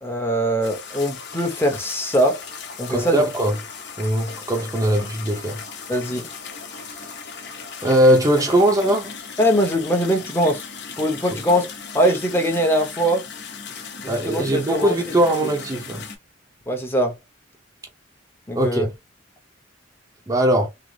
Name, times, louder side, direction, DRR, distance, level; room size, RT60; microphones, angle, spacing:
voice 1, 0.0-2.4 2.8-3.2 5.9-6.3 9.4-10.7 11.0-11.7 11.9-13.2 14.0-15.1 16.7-17.2 18.5-18.9, equal, 10° left, 0.8 m, -22 dB
sound 1, 0.6-16.2, left 6 dB, 60° left, 0.9 m, -37 dB
voice 2, 2.9-3.5 4.0-5.6 7.8-9.1 14.1-16.0 18.5-18.9 20.3-20.7, right 1 dB, 20° right, 0.7 m, -20 dB
3.8 x 2.0 x 3.3 m
head